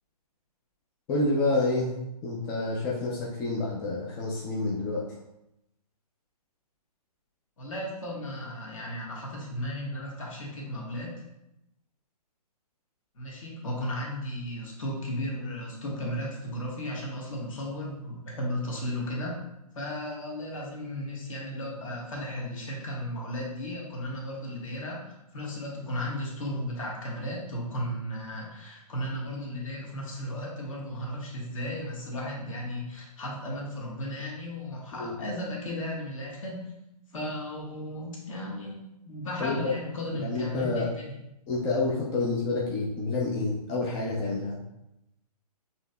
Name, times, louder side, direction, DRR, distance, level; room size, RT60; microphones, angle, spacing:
voice 1, 1.1-1.9 2.2-5.0 35.0-35.1 39.4-39.7 40.2-40.9 41.5-44.6, left 2 dB, 15° left, -4 dB, 0.4 m, -28 dB
voice 2, 7.6-11.2 13.1-19.5 19.7-36.6 37.1-38.8 39.0-41.1, equal, 55° left, -3 dB, 1.4 m, -35 dB
6.1 x 2.8 x 2.2 m, 0.86 s
hypercardioid pair, 140°, 20 cm